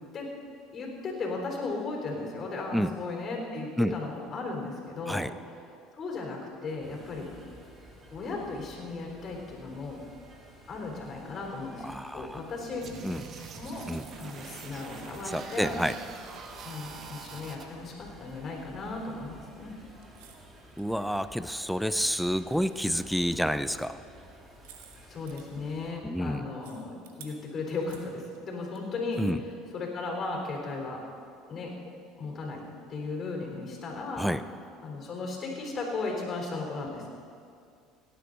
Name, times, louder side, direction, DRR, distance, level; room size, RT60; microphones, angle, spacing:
voice 1, 0.7-5.4 5.9-7.3 8.1-10.0 10.7-11.9 12.1-12.9 13.6-13.9 14.2-15.7 16.6-19.7 25.1-31.0 31.5-31.7 32.2-32.6 32.9-34.2 34.8-37.1, left 3 dB, 40° left, -1 dB, 3.7 m, -36 dB
sound 1, 6.8-25.9, equal, 25° right, 2.5 m, -52 dB
voice 2, 11.8-12.4 13.0-13.2 13.9-14.0 15.3-15.9 20.8-24.0 26.0-26.5 29.2-29.4 34.2-34.4, equal, ahead, 13 dB, 0.5 m, -29 dB
sound 2, 12.8-17.6, right 5 dB, 45° right, 1.2 m, -44 dB
sound 3, 20.0-20.5 20.8-20.9 22.1-22.3 22.6-23.3 24.4-25.4 26.6-27.3 27.7-28.8 29.1-29.2, right 9 dB, 85° right, 1.2 m, -53 dB
17.5 x 10.0 x 3.9 m, 2.3 s
supercardioid pair, 85°, 0 cm